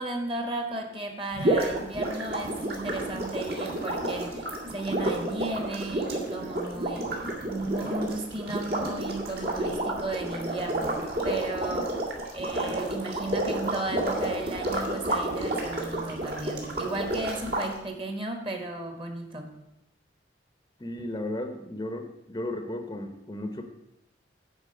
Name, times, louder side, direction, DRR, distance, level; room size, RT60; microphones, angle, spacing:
voice 1, 0.0-7.1 7.4-10.9 11.2-11.9 12.3-19.5, right 2 dB, 30° right, 4 dB, 1.4 m, -34 dB
sound 1, 1.3-17.7, right 1 dB, 60° right, 2.3 m, -30 dB
voice 2, 20.8-23.6, left 1 dB, 20° left, 6 dB, 0.7 m, -34 dB
9.9 x 4.6 x 7.7 m, 0.87 s
head